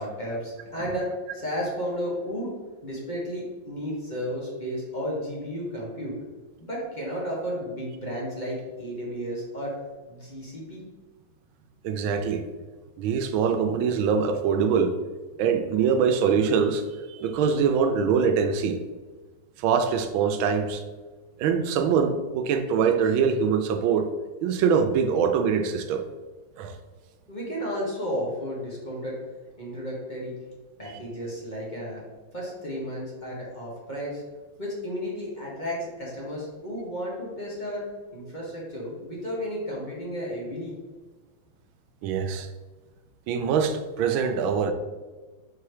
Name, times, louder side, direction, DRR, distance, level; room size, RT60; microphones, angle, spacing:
voice 1, 0.0-2.5 2.8-6.2 6.6-9.7 10.1-10.8 27.3-29.2 29.6-30.3 30.8-32.0 32.3-34.2 34.6-37.8 38.1-40.7, equal, 25° left, -5 dB, 1.6 m, -33 dB
voice 2, 11.8-12.4 13.0-15.0 15.4-16.8 17.1-18.8 19.6-20.8 21.4-24.1 24.4-26.0 26.6-26.7 42.0-42.5 43.3-44.7, right 6 dB, 85° right, 8 dB, 1.4 m, -23 dB
5.7 x 4.4 x 4.8 m, 1.3 s
omnidirectional pair, 2.1 m